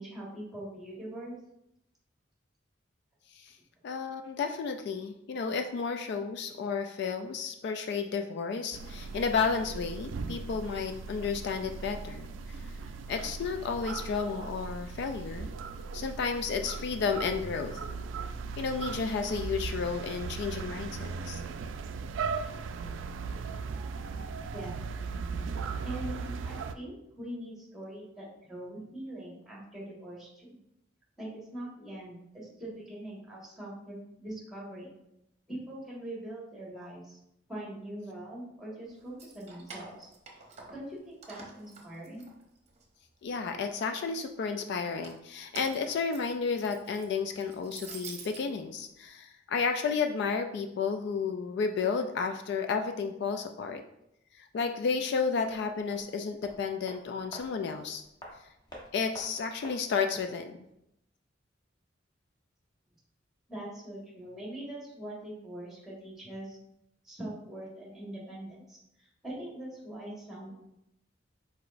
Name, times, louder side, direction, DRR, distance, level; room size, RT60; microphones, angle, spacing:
voice 1, 0.0-1.3 24.5-24.8 25.8-30.6 31.2-34.9 35.5-37.2 37.5-40.1 40.7-42.2 63.5-66.6 67.0-70.6, right 1 dB, ahead, -5 dB, 1.6 m, -42 dB
voice 2, 3.8-12.3 13.1-15.5 15.9-17.8 18.6-21.4 43.2-53.8 54.4-58.0 58.9-60.5, left 5 dB, 65° left, 6 dB, 0.3 m, -32 dB
sound 1, 8.7-26.7, right 5 dB, 90° right, 0.3 m, -38 dB
Keys jangling, 39.0-40.9 41.2-42.8 43.3-44.0 44.8-48.4, right 4 dB, 35° right, 0.8 m, -48 dB
sound 2, 55.4-60.4 60.6-60.7, equal, 20° left, 1.0 m, -50 dB
4.8 x 4.2 x 2.5 m, 0.81 s
head